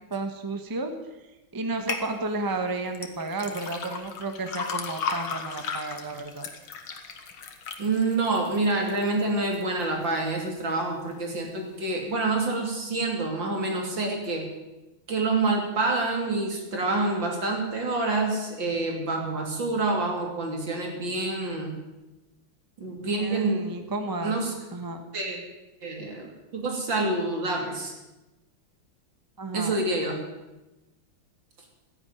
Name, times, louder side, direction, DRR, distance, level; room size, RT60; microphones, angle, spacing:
voice 1, 0.1-0.9 1.5-6.5 23.1-24.4 24.7-25.0 29.4-29.7, right 2 dB, 15° right, 6 dB, 1.1 m, -32 dB
sound 1, 1.9-2.1 3.0-9.1 9.5-10.1 10.5-10.6, left 5 dB, 90° left, 2.3 m, -35 dB
voice 2, 7.8-14.5 15.1-21.8 22.8-23.7 24.2-24.5 25.1-25.4 25.8-27.9 29.5-30.2, right 2 dB, 65° right, 1 dB, 3.8 m, -27 dB
14.5 x 10.5 x 9.5 m, 1.0 s
omnidirectional pair, 2.2 m